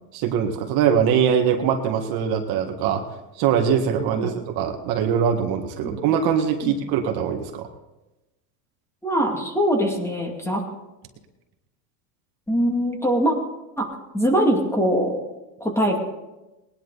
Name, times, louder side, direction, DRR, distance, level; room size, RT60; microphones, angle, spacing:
voice 1, 0.1-3.0 3.4-7.7, right 8 dB, 50° right, 4 dB, 1.8 m, -22 dB
voice 2, 9.0-10.6 12.5-13.4 13.8-13.9 14.1-15.2 15.6-16.0, equal, 5° left, 1 dB, 2.4 m, -22 dB
19.5 x 11.0 x 4.1 m, 1.0 s
supercardioid pair, 125°, 47 cm